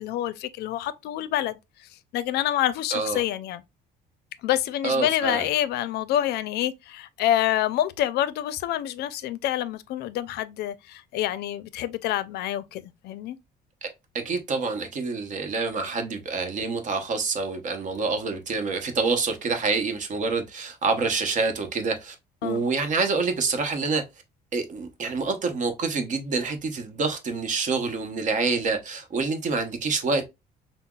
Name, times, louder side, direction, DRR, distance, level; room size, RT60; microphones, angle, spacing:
voice 1, 0.0-1.6 2.1-3.6 4.4-13.4 22.4-22.6, left 12 dB, 75° left, 0.4 m, -27 dB
voice 2, 2.9-3.2 4.8-5.5 13.8-13.9 14.1-22.1 22.4-24.0 24.5-30.3, right 4 dB, 50° right, 0.8 m, -27 dB
5.5 x 2.0 x 2.3 m
cardioid pair, 110°, 17 cm